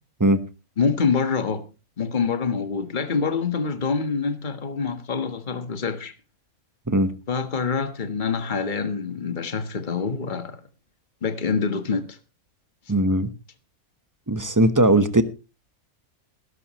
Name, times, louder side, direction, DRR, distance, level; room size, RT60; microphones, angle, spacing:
voice 1, 0.8-1.6 2.0-6.1 7.3-10.6 11.2-12.2, left 5 dB, 35° left, 1.5 m, -26 dB
voice 2, 12.9-13.3 14.3-15.2, right 1 dB, 15° right, 0.9 m, -19 dB
16.5 x 13.5 x 3.1 m
omnidirectional pair, 1.5 m